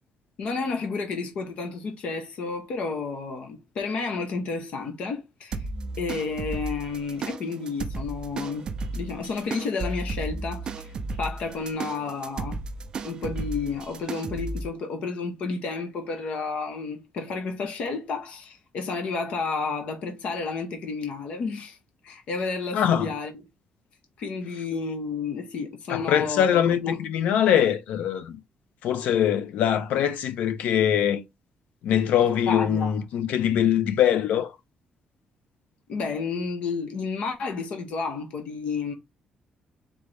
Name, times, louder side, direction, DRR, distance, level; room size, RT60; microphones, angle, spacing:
voice 1, 0.4-5.7 6.0-8.7 8.9-12.6 13.0-21.8 22.0-23.3 24.2-27.0 32.5-32.9 35.9-38.9, left 4 dB, 55° left, 0.9 m, -31 dB
sound 1, 5.5-14.7, right 3 dB, 35° right, 0.4 m, -34 dB
voice 2, 22.7-23.1 25.9-28.4 28.8-31.2 31.8-34.6, left 9 dB, 75° left, 0.7 m, -23 dB
3.9 x 3.4 x 3.3 m
cardioid pair, 180°, 3 cm